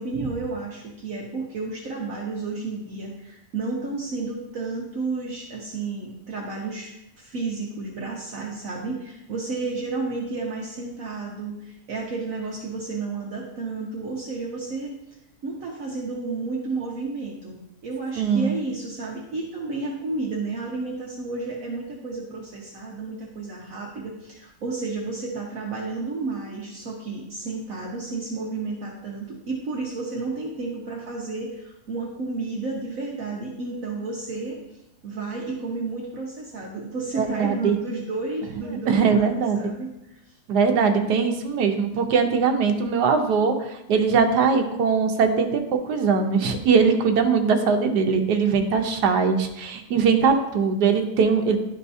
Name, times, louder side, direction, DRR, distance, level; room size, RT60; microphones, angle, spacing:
voice 1, 0.0-14.9 15.4-34.6 35.0-40.3, right 3 dB, 60° right, -2 dB, 1.2 m, -32 dB
voice 2, 18.2-18.5 37.2-37.8 38.9-39.7 40.5-43.5 43.9-45.6 45.9-51.6, right 5 dB, 80° right, 5 dB, 1.3 m, -21 dB
11.0 x 4.4 x 2.7 m, 0.87 s
omnidirectional pair, 1.7 m